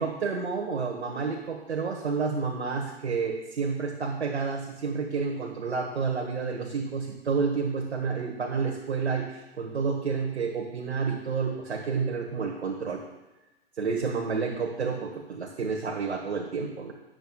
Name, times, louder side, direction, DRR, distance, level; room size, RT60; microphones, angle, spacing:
voice 1, 0.0-13.0 13.8-16.9, right 5 dB, 80° right, 1 dB, 1.4 m, -30 dB
17.5 x 7.9 x 2.3 m, 1.1 s
figure-of-eight pair, 105°, 32 cm